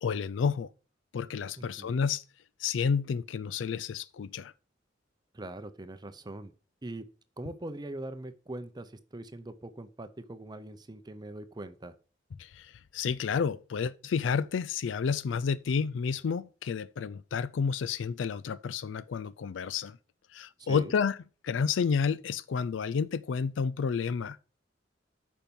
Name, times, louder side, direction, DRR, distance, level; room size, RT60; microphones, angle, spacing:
voice 1, 0.0-0.7 1.1-2.2 2.6-4.5 12.4-20.0 20.3-21.2 21.4-24.4, left 6 dB, 85° left, 0.4 m, -30 dB
voice 2, 1.6-2.0 5.3-6.5 6.8-7.1 7.4-11.9 20.6-21.0, right 1 dB, 20° right, 0.6 m, -42 dB
8.9 x 5.4 x 5.3 m
head